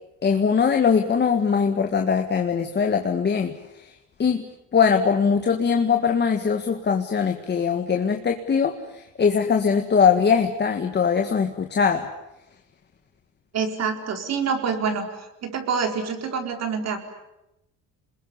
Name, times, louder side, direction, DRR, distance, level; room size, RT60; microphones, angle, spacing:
voice 1, 0.2-3.5 4.2-4.4 4.7-12.1, left 6 dB, 30° left, 4 dB, 1.8 m, -21 dB
voice 2, 13.5-15.1 15.4-17.0, right 5 dB, 50° right, 5 dB, 4.6 m, -26 dB
29.0 x 21.0 x 9.9 m, 0.92 s
cardioid pair, 125°, 34 cm